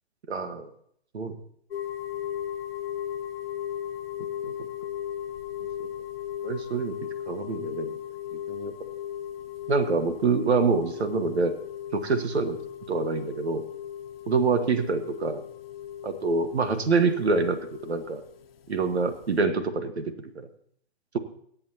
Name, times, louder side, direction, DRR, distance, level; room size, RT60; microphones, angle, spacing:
voice 1, 0.3-0.7 1.1-1.4 4.4-4.5 5.8-5.9 6.4-6.9 7.3-7.9 8.5-8.7 9.7-11.5 11.9-12.6 12.9-13.6 14.3-15.4 16.0-18.2 18.7-20.5, right 4 dB, 85° right, 9 dB, 1.5 m, -26 dB
sound 1, 1.7-19.4, left 10 dB, 60° left, 1.1 m, -37 dB
24.5 x 8.6 x 2.8 m, 0.67 s
hypercardioid pair, 155°, 32 cm